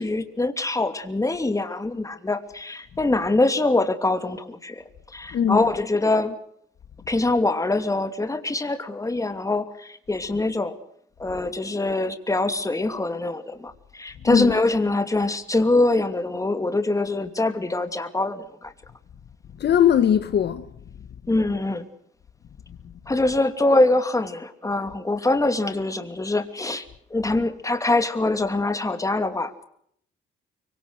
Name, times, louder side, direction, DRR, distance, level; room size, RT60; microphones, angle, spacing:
voice 1, 0.0-4.8 5.1-6.4 7.1-10.7 11.2-18.7 21.3-21.9 23.1-26.8 27.1-29.5, left 2 dB, 15° left, 2.7 m, -24 dB
voice 2, 5.3-5.6 14.2-14.5 19.6-20.6, left 9 dB, 60° left, 1.4 m, -20 dB
24.5 x 24.5 x 6.5 m
cardioid pair, 90°, 20 cm